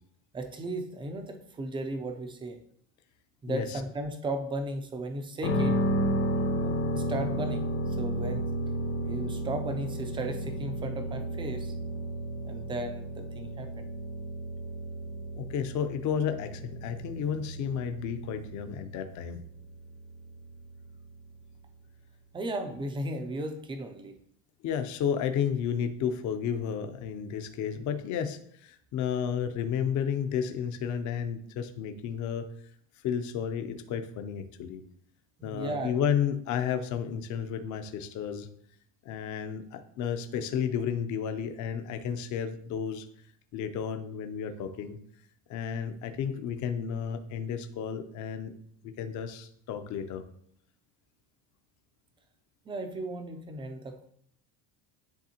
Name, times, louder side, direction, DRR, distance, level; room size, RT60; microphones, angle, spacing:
voice 1, 0.3-2.6 3.4-5.8 6.6-8.4 9.0-11.8 12.4-13.9 22.3-24.2 35.4-35.9 52.7-54.1, right 2 dB, 15° right, 6 dB, 0.3 m, -35 dB
sound 1, 5.4-21.3, equal, 70° left, 1.3 m, -33 dB
voice 2, 15.3-19.4 24.6-32.5 33.0-34.8 35.4-38.5 39.0-43.1 43.5-45.0 45.5-48.5 48.8-50.2, left 8 dB, 45° left, 8 dB, 0.5 m, -32 dB
10.0 x 3.4 x 2.8 m, 0.66 s
cardioid pair, 150°, 44 cm